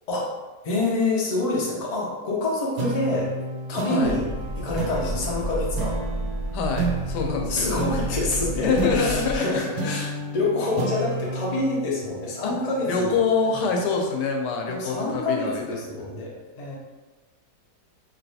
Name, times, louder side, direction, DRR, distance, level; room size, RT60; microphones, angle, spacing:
voice 1, 0.6-3.3 3.7-4.2 4.6-6.0 7.5-13.6 14.7-16.7, left 2 dB, 55° left, -4 dB, 0.4 m, -27 dB
sound 1, 2.8-13.6, right 2 dB, 80° right, 1.2 m, -32 dB
voice 2, 3.8-4.1 6.5-7.7 8.6-10.1 12.4-12.5 12.9-15.8, left 5 dB, 85° left, 2 dB, 1.2 m, -26 dB
sound 2, 4.0-9.4, right 1 dB, 55° right, 1.0 m, -31 dB
3.1 x 2.7 x 2.7 m, 1.2 s
omnidirectional pair, 1.8 m